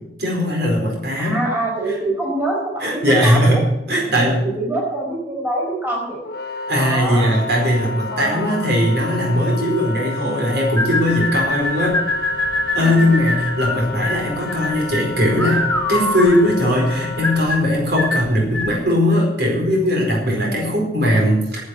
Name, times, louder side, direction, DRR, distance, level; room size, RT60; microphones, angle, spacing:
voice 1, 0.2-1.4 2.8-4.4 6.7-12.0 12.7-21.7, equal, 65° right, -1 dB, 4.7 m, -19 dB
voice 2, 1.2-3.6 3.9-6.3 6.8-7.4 8.1-8.7 12.7-13.1 20.4-20.8, right 1 dB, 10° right, -3 dB, 4.8 m, -25 dB
Wind instrument woodwind instrument, 6.2-17.5, left 4 dB, 60° left, 1.1 m, -31 dB
sound 1, 10.8-18.8, left 2 dB, 5° left, 1.8 m, -24 dB
11.0 x 8.6 x 9.7 m, 0.87 s
head